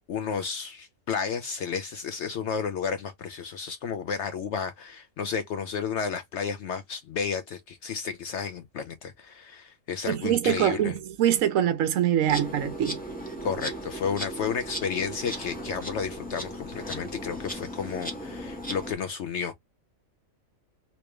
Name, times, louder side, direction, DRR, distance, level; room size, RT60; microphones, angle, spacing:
voice 1, 0.1-10.9 13.4-19.5, left 6 dB, 65° left, 0.8 m, -32 dB
voice 2, 10.1-13.0, right 10 dB, 75° right, 1.1 m, -24 dB
Insect, 12.3-18.9, equal, 5° left, 1.2 m, -37 dB
3.2 x 3.0 x 3.1 m
omnidirectional pair, 1.4 m